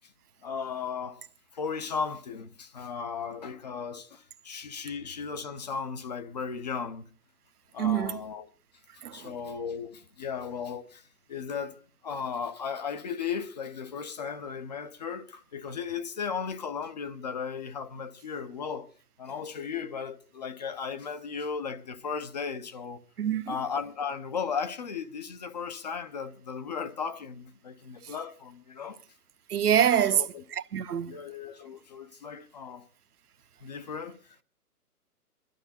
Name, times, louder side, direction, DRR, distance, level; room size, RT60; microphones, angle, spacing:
voice 1, 0.4-1.2 1.5-7.1 7.7-8.5 9.1-18.9 19.2-23.0 23.5-29.0 30.0-30.4 31.0-32.9 33.6-34.4, left 6 dB, 30° left, 0.7 m, -36 dB
voice 2, 7.8-8.2 9.0-9.3 23.2-23.5 29.5-30.2 30.5-31.2, right 9 dB, 75° right, 0.9 m, -25 dB
23.0 x 12.0 x 4.2 m
hypercardioid pair, 150°, 46 cm